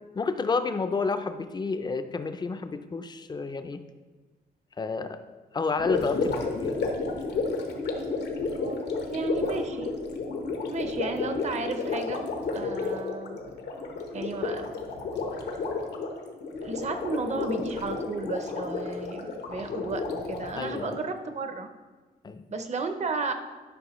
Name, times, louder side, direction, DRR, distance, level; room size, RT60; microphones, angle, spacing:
voice 1, 0.1-3.8 4.8-5.2 5.5-6.8 20.5-21.0 22.2-22.4, left 4 dB, 25° left, 9 dB, 0.4 m, -30 dB
Gurgling, 5.8-21.1, left 3 dB, 85° left, 1.1 m, -32 dB
voice 2, 9.1-9.9 10.2-10.3 10.7-12.3 12.5-13.4 14.1-14.7 16.6-21.7 22.5-23.3, right 3 dB, 45° right, 7 dB, 0.6 m, -33 dB
11.5 x 5.4 x 3.0 m, 1.3 s
wide cardioid pair, 135°, 17 cm